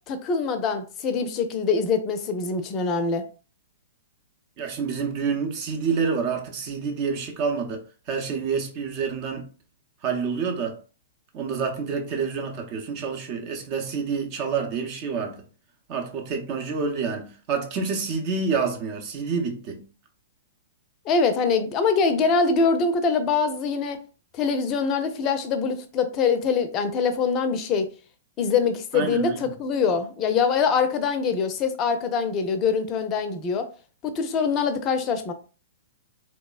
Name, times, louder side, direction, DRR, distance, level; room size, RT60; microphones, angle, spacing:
voice 1, 0.1-3.3 21.1-24.0 24.3-27.9 28.4-33.7 34.1-35.3, left 5 dB, 30° left, 0.5 m, -24 dB
voice 2, 4.6-7.8 8.1-9.5 10.0-10.8 11.3-15.3 15.9-19.8 28.9-29.5, right 5 dB, 40° right, 0.7 m, -28 dB
3.1 x 2.0 x 2.3 m
hypercardioid pair, 120°, 0 cm